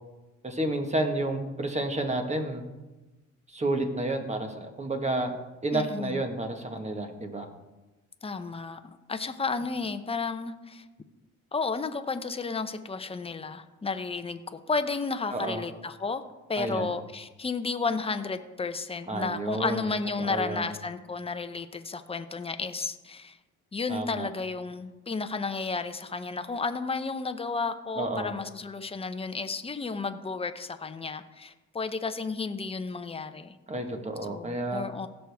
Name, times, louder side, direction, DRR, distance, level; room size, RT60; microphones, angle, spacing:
voice 1, 0.4-2.6 3.5-5.3 5.6-7.5 15.3-15.6 16.6-16.9 19.1-19.9 20.2-20.7 23.9-24.3 28.0-28.3 33.7-34.9, right 2 dB, 20° right, 5 dB, 1.5 m, -30 dB
voice 2, 5.7-6.2 8.2-8.8 9.1-10.8 11.5-16.2 16.5-23.4 23.7-33.6 34.3-35.1, left 4 dB, 20° left, 9 dB, 0.8 m, -32 dB
16.5 x 6.5 x 3.5 m, 1.1 s
cardioid pair, 90°, 30 cm